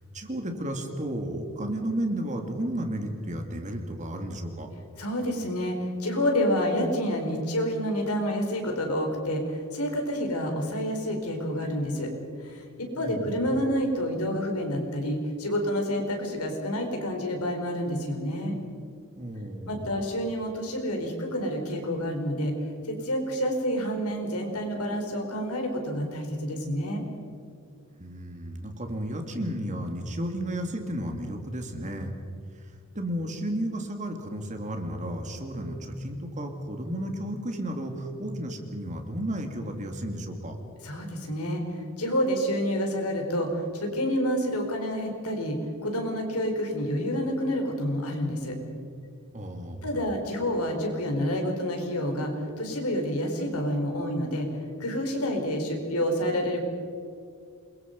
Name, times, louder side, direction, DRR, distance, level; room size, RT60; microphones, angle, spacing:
voice 1, 0.1-4.7 12.9-13.3 19.1-19.9 28.0-32.1 32.9-40.6 49.3-50.0, right 1 dB, 35° right, 4 dB, 2.6 m, -33 dB
voice 2, 5.0-12.1 12.5-18.6 19.7-22.5 22.9-27.0 40.8-41.6 42.0-45.6 45.8-48.5 49.8-52.3 52.6-54.5 54.8-56.6, equal, 80° left, 3 dB, 4.6 m, -28 dB
28.0 x 22.0 x 5.4 m, 2.3 s
head